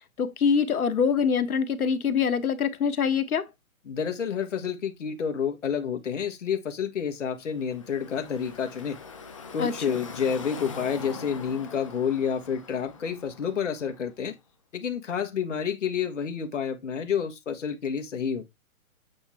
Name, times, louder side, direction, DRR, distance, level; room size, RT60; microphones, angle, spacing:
voice 1, 0.2-3.5 9.6-10.0, left 6 dB, 85° left, 1.4 m, -24 dB
voice 2, 3.8-9.0 9.5-14.4 14.7-18.4, left 7 dB, 55° left, 1.6 m, -29 dB
Car passing by / Traffic noise roadway noise, 7.3-14.3, left 4 dB, 25° left, 0.8 m, -43 dB
8.6 x 3.5 x 4.3 m
hypercardioid pair, 175°, 42 cm